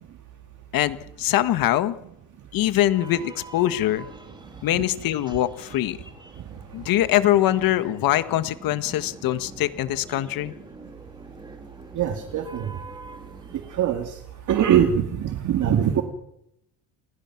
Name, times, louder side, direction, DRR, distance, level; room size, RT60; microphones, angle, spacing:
voice 1, 0.7-2.0 2.5-4.1 4.6-6.0 6.7-10.5, left 13 dB, 50° left, 11 dB, 1.6 m, -23 dB
sound 1, 2.9-13.9, right 2 dB, 10° right, 2.2 m, -45 dB
voice 2, 12.0-12.7 13.7-14.1 14.5-16.0, right 9 dB, 45° right, 5 dB, 2.2 m, -22 dB
28.5 x 20.5 x 6.0 m, 0.80 s
cardioid pair, 140°, 43 cm